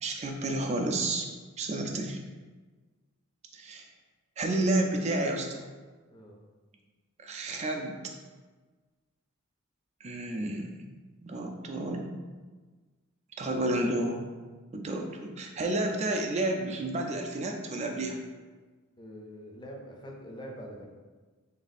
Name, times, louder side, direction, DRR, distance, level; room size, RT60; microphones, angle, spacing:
voice 1, 0.0-1.3 1.6-2.2 3.5-3.9 4.4-5.7 7.2-7.9 10.0-10.9 11.2-12.1 13.4-14.3 14.7-18.2, right 2 dB, 30° right, 2 dB, 0.4 m, -31 dB
voice 2, 19.0-20.8, equal, 20° left, 0 dB, 0.5 m, -44 dB
3.4 x 2.7 x 4.1 m, 1.3 s
head